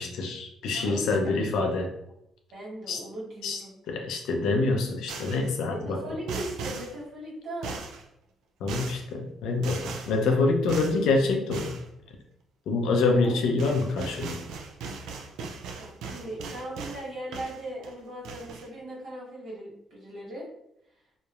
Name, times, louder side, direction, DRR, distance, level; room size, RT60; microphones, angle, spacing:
voice 1, 0.0-1.9 2.9-3.0 3.4-3.6 3.9-6.0 8.6-11.7 12.7-14.4, left 3 dB, 85° left, 2 dB, 0.5 m, -26 dB
voice 2, 0.7-1.3 2.5-3.7 5.7-7.8 13.2-13.4 15.8-20.4, right 1 dB, 70° right, -4 dB, 1.2 m, -39 dB
sound 1, 5.1-5.5 6.3-6.9 7.6-8.0 8.7-9.0 9.6-10.2 10.7-11.0 11.5-11.8 13.2-13.3 13.6-17.0 17.3-17.9 18.2-18.7, right 4 dB, 85° right, 0.3 m, -38 dB
2.9 x 2.0 x 2.4 m, 0.78 s
cardioid pair, 90°, 0 cm